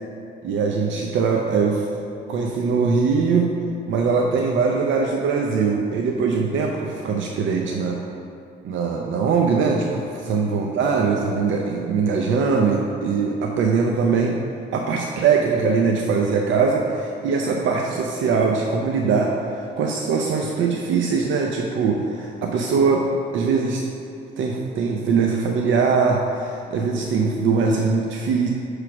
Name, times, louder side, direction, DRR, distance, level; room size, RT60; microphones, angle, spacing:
voice 1, 0.4-1.8 2.3-3.5 3.9-8.0 8.6-14.4 14.7-23.0 23.3-23.8 24.4-28.5, right 5 dB, 75° right, 0 dB, 0.5 m, -21 dB
6.0 x 3.2 x 5.8 m, 2.6 s
cardioid pair, 90°, 20 cm